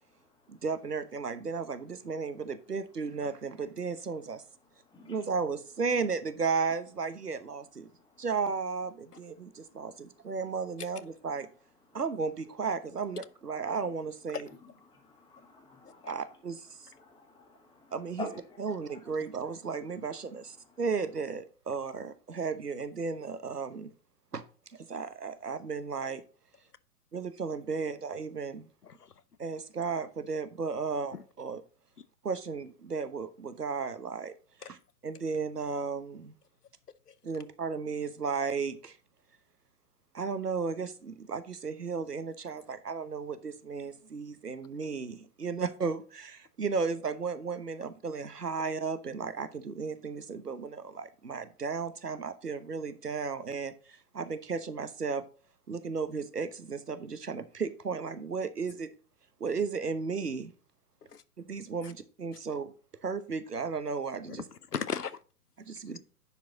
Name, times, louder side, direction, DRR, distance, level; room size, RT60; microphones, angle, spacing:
voice 1, 0.5-4.4 5.1-7.9 8.2-11.5 11.9-14.5 16.1-16.9 17.9-18.3 18.6-23.9 24.3-24.4 24.8-26.2 27.1-28.7 29.4-31.6 32.2-34.3 34.7-34.8 35.0-36.3 37.2-39.0 40.1-55.2 55.7-58.9 59.4-60.5 61.5-62.7 63.0-64.4 65.7-66.0, right 5 dB, 80° right, 1.1 m, -34 dB
voice 2, 14.9-16.1 17.0-17.8 18.2-18.4, left 2 dB, 10° left, 1.6 m, -45 dB
voice 3, 28.8-29.1 31.1-31.2 34.6-34.7 37.1-37.2 61.1-61.2 61.8-61.9 64.3-65.2, left 6 dB, 80° left, 0.9 m, -37 dB
10.5 x 4.8 x 3.9 m
figure-of-eight pair, 115°, 46 cm